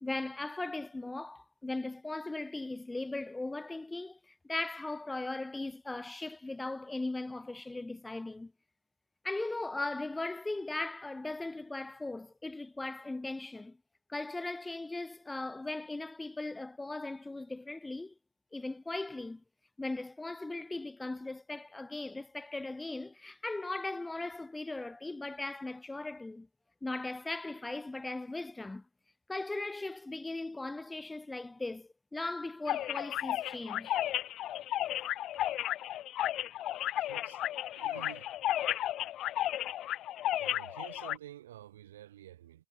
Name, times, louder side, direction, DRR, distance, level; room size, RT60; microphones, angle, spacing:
voice 1, 0.0-8.5 9.2-13.8 14.1-18.1 18.5-19.4 19.8-26.5 26.8-28.8 29.3-33.9, left 2 dB, 10° left, 0.9 m, -38 dB
sound 1, 32.7-41.2, left 13 dB, 45° left, 0.7 m, -34 dB
voice 2, 36.9-37.4 37.7-38.3 40.4-42.7, right 13 dB, 85° right, 6.8 m, -50 dB
hypercardioid pair, 95°, 0 cm